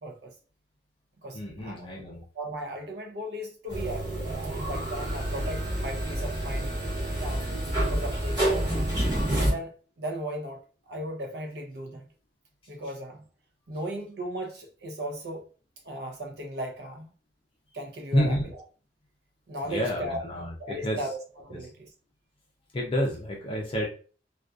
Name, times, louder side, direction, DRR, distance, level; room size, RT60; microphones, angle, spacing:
voice 1, 0.0-0.3 1.2-1.9 2.3-4.2 4.5-6.8 7.2-8.7 9.5-9.7 10.0-10.6 10.9-12.0 12.7-13.3 13.7-15.5 15.8-17.1 17.7-18.6 19.5-20.2 20.6-21.9, right 1 dB, 65° right, 0.6 m, -36 dB
voice 2, 1.3-2.2 4.5-4.6 7.3-7.5 18.1-18.4 19.6-21.0 22.7-23.9, equal, 30° left, 0.5 m, -29 dB
sound 1, 3.7-9.5, right 1 dB, 20° right, 1.2 m, -28 dB
2.5 x 2.3 x 2.3 m
head